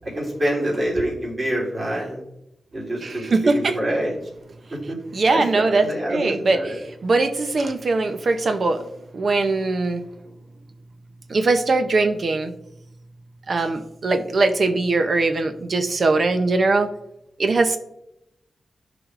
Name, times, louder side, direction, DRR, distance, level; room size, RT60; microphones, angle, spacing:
voice 1, 0.1-2.2 2.7-4.1 4.7-5.0 5.3-6.8, right 1 dB, 35° right, -5 dB, 3.0 m, -26 dB
voice 2, 3.0-3.8 5.1-6.6 7.0-8.8 9.1-10.0 11.3-12.5 13.5-16.9 17.4-17.8, right 3 dB, 55° right, 7 dB, 0.6 m, -21 dB
12.5 x 5.1 x 2.5 m, 0.86 s
wide cardioid pair, 100°, 0 cm